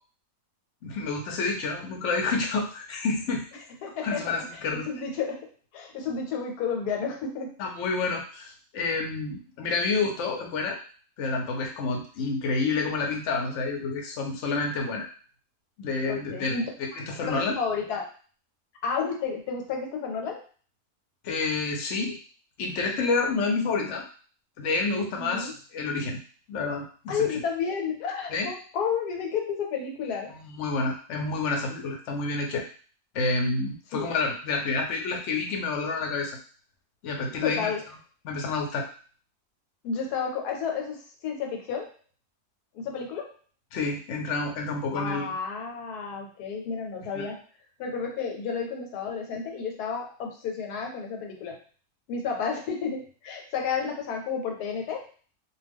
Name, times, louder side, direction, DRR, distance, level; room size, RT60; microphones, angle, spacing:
voice 1, 0.8-3.5 4.0-4.9 7.6-10.8 11.2-15.1 15.8-16.6 17.0-17.5 21.2-22.2 22.6-24.0 24.6-26.2 26.5-27.2 28.3-28.5 30.3-32.6 33.1-36.4 37.0-37.7 38.2-38.9 43.7-45.3 47.2-47.3, left 3 dB, 60° left, 1 dB, 0.9 m, -29 dB
voice 2, 3.8-7.6 16.1-16.7 17.3-18.1 18.8-20.4 25.2-25.5 27.1-30.3 33.9-34.1 37.4-37.8 39.8-41.9 42.7-43.3 44.9-47.4 47.8-51.6 52.1-55.1, left 6 dB, 85° left, 2 dB, 1.2 m, -31 dB
2.5 x 2.3 x 3.4 m, 0.41 s
omnidirectional pair, 1.6 m